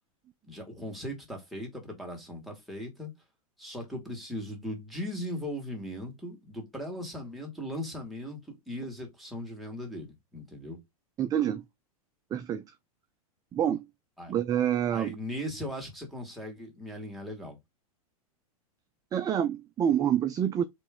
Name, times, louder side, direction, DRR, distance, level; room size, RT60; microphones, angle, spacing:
voice 1, 0.4-3.1 3.6-10.8 14.2-14.3 14.9-17.6, equal, ahead, 2.2 m, -38 dB
voice 2, 11.2-11.6 12.3-12.6 13.5-13.8 14.3-15.1 19.1-20.6, right 9 dB, 20° right, 0.4 m, -27 dB
4.4 x 3.2 x 3.7 m
hypercardioid pair, 115°, 19 cm